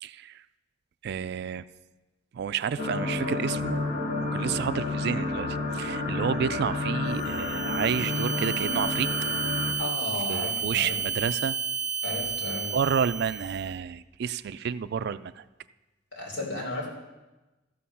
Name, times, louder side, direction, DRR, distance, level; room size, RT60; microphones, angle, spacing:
voice 1, 0.0-0.4 1.0-1.6 2.3-3.8 4.2-9.1 10.3-11.6 12.7-15.4, right 7 dB, 60° right, 14 dB, 0.3 m, -30 dB
sound 1, 2.8-9.7, left 2 dB, 45° left, 1.5 m, -30 dB
sound 2, 7.1-13.7, right 6 dB, 45° right, 1.0 m, -32 dB
voice 2, 9.8-11.0 12.0-12.7 16.1-16.9, left 2 dB, 65° left, -3 dB, 3.3 m, -34 dB
13.5 x 6.4 x 5.6 m, 1.1 s
head